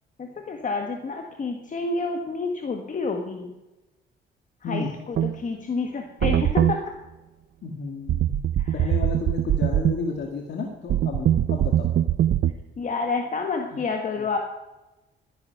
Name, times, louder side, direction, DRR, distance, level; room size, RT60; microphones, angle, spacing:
voice 1, 0.2-3.5 4.6-6.9 8.6-8.9 12.8-14.4, left 4 dB, 40° left, 3 dB, 1.6 m, -29 dB
sound 1, 5.2-5.3 6.2-6.8 8.1-9.9 10.9-12.5, right 11 dB, 60° right, 0.7 m, -22 dB
voice 2, 7.6-11.9 13.7-13.8 14.2-14.3, left 4 dB, 60° left, 2 dB, 1.9 m, -32 dB
13.5 x 9.9 x 5.8 m, 1.0 s
cardioid pair, 90°, 20 cm